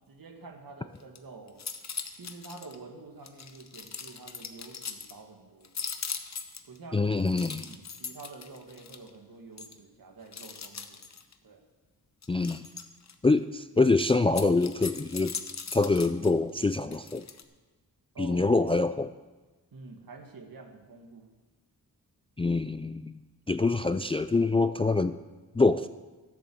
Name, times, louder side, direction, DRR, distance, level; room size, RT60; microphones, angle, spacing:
voice 1, 0.0-1.6 2.1-5.7 6.6-7.1 7.6-11.1 11.4-11.6 18.1-18.4 19.7-21.3, right 3 dB, 65° right, 3 dB, 1.8 m, -48 dB
sound 1, 1.0-1.2 1.5-2.8 3.2-5.1 5.6-6.8 7.2-9.1 9.6-9.7 10.3-11.3 12.2-13.1 14.2-16.3 16.9-17.4, left 6 dB, 45° left, 0.9 m, -39 dB
voice 2, 6.9-7.7 12.3-12.6 13.2-15.3 15.7-17.3 18.2-19.1 22.4-23.2 23.5-25.2 25.5-25.9, left 3 dB, 15° left, 11 dB, 0.3 m, -25 dB
12.5 x 7.0 x 7.7 m, 1.2 s
wide cardioid pair, 90°, 38 cm